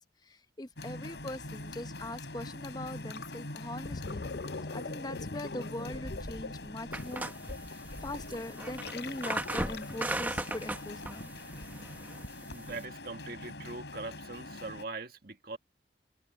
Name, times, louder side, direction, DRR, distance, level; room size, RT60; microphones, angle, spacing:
voice 1, 0.0-4.3 4.7-7.3 7.6-11.3, left 1 dB, 20° left, 0.8 m, -41 dB
sound 1, 0.8-14.8, left 2 dB, 80° left, 4.2 m, -43 dB
Gurgling, 3.1-3.3 3.7-10.2, left 4 dB, 60° left, 0.7 m, -43 dB
sound 2, 6.9-12.9, right 1 dB, 10° right, 1.1 m, -38 dB
voice 2, 12.5-15.6, right 3 dB, 55° right, 1.9 m, -41 dB
head